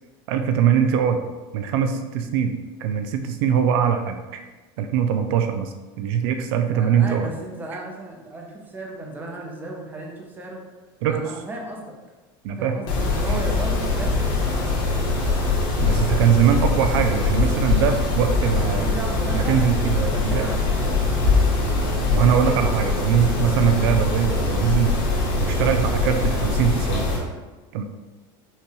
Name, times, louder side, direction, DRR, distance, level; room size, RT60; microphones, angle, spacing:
voice 1, 0.3-1.2 1.5-2.5 2.8-4.4 4.8-7.3 11.0-11.2 12.4-12.8 13.3-13.4 15.8-18.9 19.3-20.5 22.1-24.9 25.4-27.1 27.7-27.8, right 8 dB, 75° right, 6 dB, 0.4 m, -22 dB
voice 2, 6.7-10.6 11.1-12.0 12.6-14.7 18.6-21.1 22.0-22.7, right 2 dB, 15° right, -1 dB, 0.7 m, -35 dB
Mechanisms, 12.9-27.2, left 3 dB, 65° left, 1.3 m, -22 dB
5.6 x 2.3 x 3.0 m, 1.2 s
supercardioid pair, 150°, 13 cm